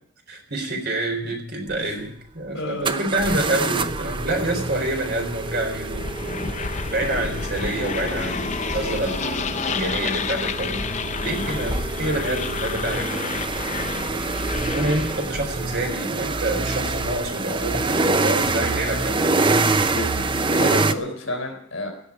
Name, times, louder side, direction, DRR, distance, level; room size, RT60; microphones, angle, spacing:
voice 1, 0.3-13.2 14.0-19.3, right 1 dB, 55° right, 3 dB, 4.3 m, -27 dB
sound 1, 1.7-1.8 2.8-20.9, right 3 dB, 25° right, 0.7 m, -26 dB
voice 2, 2.5-3.2 19.9-21.9, equal, 75° left, 2 dB, 4.0 m, -30 dB
sound 2, 5.9-15.3, left 5 dB, 35° left, 0.6 m, -30 dB
16.5 x 7.2 x 9.9 m, 0.67 s
head